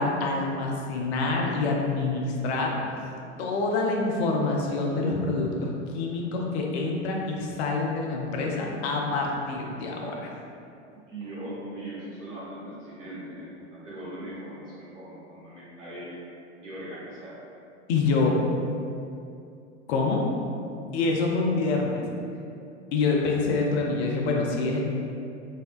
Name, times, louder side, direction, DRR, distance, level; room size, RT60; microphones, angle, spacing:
voice 1, 0.0-2.8 3.4-10.3 17.9-18.4 19.9-20.2 20.9-22.0 22.9-24.8, left 3 dB, 65° left, 0 dB, 0.5 m, -26 dB
voice 2, 10.9-16.1 16.6-17.4, right 1 dB, 85° right, -9 dB, 1.0 m, -40 dB
2.7 x 2.1 x 2.3 m, 2.5 s
hypercardioid pair, 85°, 36 cm